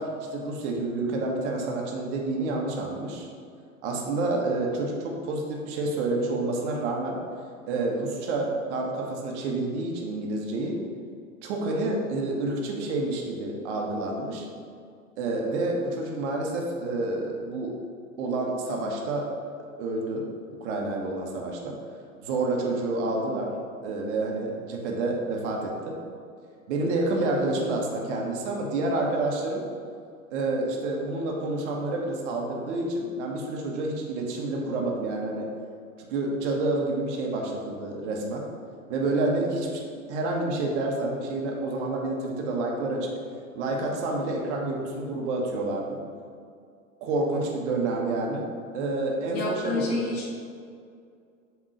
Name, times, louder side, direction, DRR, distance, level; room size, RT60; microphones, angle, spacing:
voice 1, 0.0-3.3 3.8-7.2 7.7-10.8 11.4-14.5 15.2-17.7 18.2-19.3 19.8-20.3 20.6-21.8 22.2-23.5 23.8-26.0 26.7-29.6 30.3-35.5 36.1-38.5 38.9-39.8 40.1-43.1 43.5-46.0 47.0-48.5 48.7-50.0, right 2 dB, 55° right, -1 dB, 1.3 m, -28 dB
voice 2, 49.3-50.3, left 2 dB, 35° left, -2 dB, 1.5 m, -30 dB
7.4 x 3.6 x 5.0 m, 2.3 s
figure-of-eight pair, 90°, 42 cm